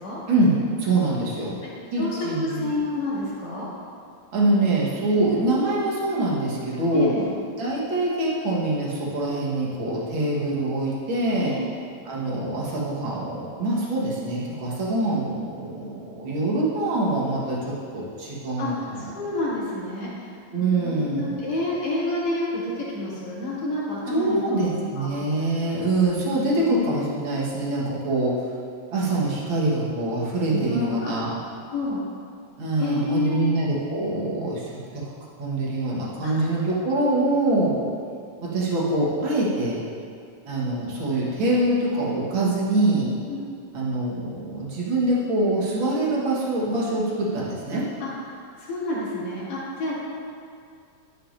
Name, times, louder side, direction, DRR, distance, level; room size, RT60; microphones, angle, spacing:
voice 1, 0.3-1.6 1.9-2.7 4.3-7.1 7.6-11.6 12.1-18.7 20.5-21.4 24.1-28.4 28.9-31.3 32.6-34.6 34.9-35.1 35.4-37.8 38.4-39.8 40.5-43.1 43.7-47.9, right 2 dB, 50° right, -5 dB, 1.9 m, -24 dB
voice 2, 2.0-3.7 5.1-5.3 6.9-7.3 11.4-11.7 18.6-20.3 20.6-25.1 26.5-26.8 30.5-31.1 31.7-32.0 32.8-33.6 36.2-36.3 43.3-43.4 48.0-48.1 48.6-50.0, left 2 dB, 70° left, -8 dB, 3.4 m, -29 dB
12.0 x 7.2 x 2.6 m, 2.4 s
omnidirectional pair, 3.3 m